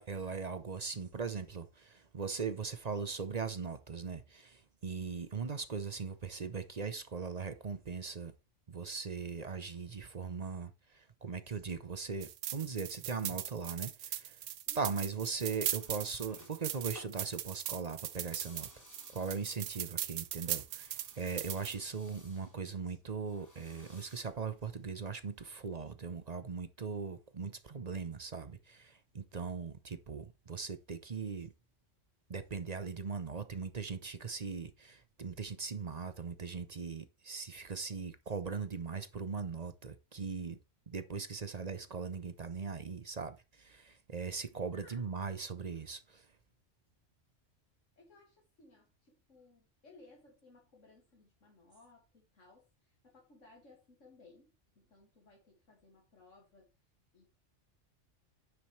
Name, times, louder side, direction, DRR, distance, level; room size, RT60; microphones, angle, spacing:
voice 1, 0.0-8.3 8.7-14.4 14.8-18.8 19.1-31.5 32.3-40.6 40.9-46.2, right 5 dB, 40° right, 0.8 m, -39 dB
sound 1, 12.2-21.8, right 11 dB, 85° right, 1.0 m, -39 dB
voice 2, 14.7-15.1 44.7-45.0 48.0-56.7 57.1-57.2, left 2 dB, 80° left, 2.4 m, -61 dB
sound 2, 15.2-25.5, equal, 15° left, 3.0 m, -60 dB
9.7 x 7.4 x 3.2 m
omnidirectional pair, 1.3 m